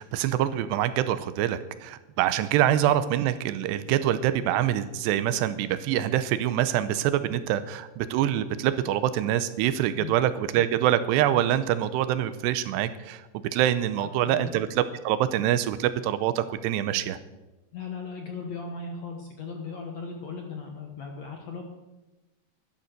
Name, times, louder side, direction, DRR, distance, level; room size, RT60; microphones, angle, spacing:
voice 1, 0.0-13.2 13.5-17.2, right 11 dB, 85° right, 12 dB, 2.8 m, -25 dB
voice 2, 14.0-14.5 17.7-21.6, left 4 dB, 65° left, 2 dB, 1.8 m, -37 dB
12.5 x 11.5 x 6.6 m, 1.1 s
omnidirectional pair, 4.9 m